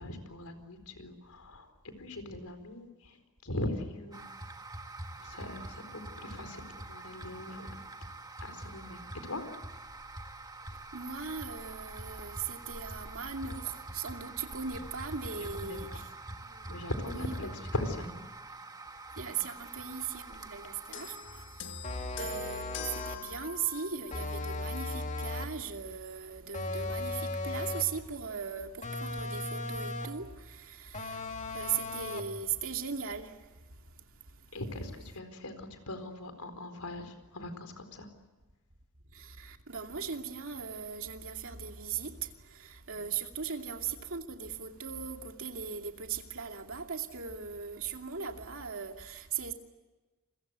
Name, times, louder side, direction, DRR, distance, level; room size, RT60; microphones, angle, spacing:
voice 1, 0.0-4.3 5.2-7.8 8.4-9.5 15.4-16.1 16.7-18.2 34.5-38.1 42.9-43.1, left 1 dB, 80° left, 4.4 m, -40 dB
sound 1, 4.1-22.1, right 2 dB, 15° right, 1.5 m, -45 dB
voice 2, 10.9-16.0 17.1-17.3 19.2-21.2 22.2-31.2 31.5-33.3 39.1-42.1 42.5-49.5, right 6 dB, 65° right, 2.6 m, -38 dB
sound 2, 20.9-24.5 25.4-25.6, left 6 dB, 55° left, 1.6 m, -44 dB
sound 3, 21.8-23.3 24.1-25.6 26.5-28.0 28.8-30.3 30.9-32.4, left 2 dB, 35° left, 2.4 m, -37 dB
29.0 x 23.0 x 8.1 m
head